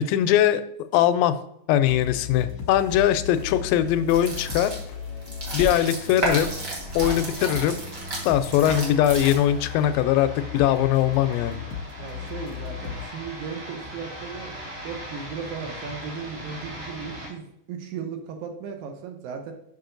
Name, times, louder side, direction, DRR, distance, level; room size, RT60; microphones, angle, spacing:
voice 1, 0.1-0.6 0.9-1.4 1.7-4.7 5.5-6.5 6.9-7.8 8.2-11.6, left 11 dB, 85° left, 12 dB, 2.2 m, -21 dB
sound 1, 1.9-13.0, left 7 dB, 65° left, 1.5 m, -37 dB
sound 2, 4.0-9.7, right 1 dB, 45° right, 1.0 m, -32 dB
sound 3, 4.8-17.3, equal, 90° right, 4.1 m, -41 dB
voice 2, 12.0-14.6 14.8-19.5, right 6 dB, 75° right, 5 dB, 1.9 m, -36 dB
6.9 x 5.7 x 3.9 m, 0.75 s
omnidirectional pair, 4.1 m